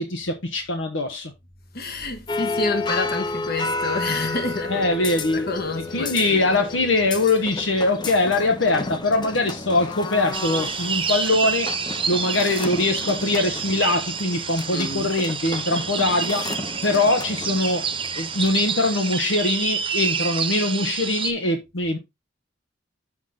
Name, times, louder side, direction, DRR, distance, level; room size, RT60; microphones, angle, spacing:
voice 1, 0.0-1.3 4.7-5.5 5.9-11.7 12.1-16.5 16.8-22.0, left 2 dB, 70° left, 1.1 m, -22 dB
voice 2, 1.7-5.1 5.3-6.6 14.7-15.1, left 3 dB, 55° left, 1.5 m, -29 dB
sound 1, 2.3-18.9, left 2 dB, 25° left, 0.7 m, -32 dB
sound 2, 10.3-21.3, right 6 dB, 25° right, 1.1 m, -28 dB
7.3 x 5.8 x 3.8 m
head